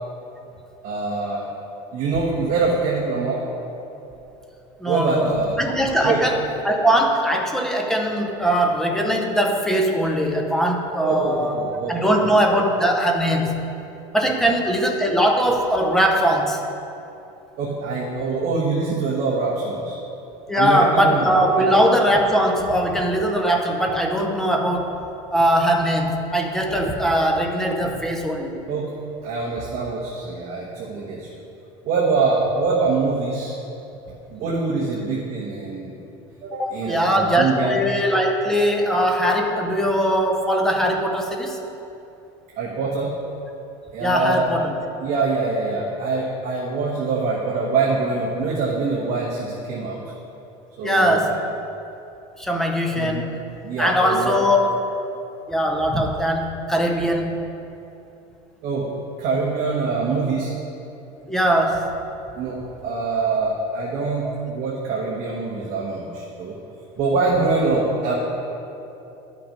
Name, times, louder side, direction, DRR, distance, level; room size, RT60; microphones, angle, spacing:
voice 1, 0.8-1.5 1.9-3.4 4.9-5.6 6.0-6.2 11.0-12.3 14.2-14.3 17.6-20.0 20.5-21.6 28.7-28.9 29.2-31.3 31.8-33.5 34.3-35.9 36.4-37.8 38.8-38.9 42.6-43.1 43.9-44.4 45.0-50.0 50.8-51.1 52.9-53.2 53.6-54.4 58.6-58.9 59.2-60.5 62.4-66.6 67.0-68.2, right 4 dB, 45° right, -3 dB, 1.2 m, -24 dB
voice 2, 4.8-11.6 11.9-13.6 14.1-16.6 20.5-25.0 25.3-28.6 36.6-41.6 44.0-44.7 50.8-51.4 52.4-53.4 53.8-54.8 55.5-57.4 61.2-61.9 64.2-64.3, equal, 5° left, 1 dB, 0.7 m, -20 dB
11.5 x 6.0 x 5.2 m, 2.9 s
cardioid pair, 165°, 15 cm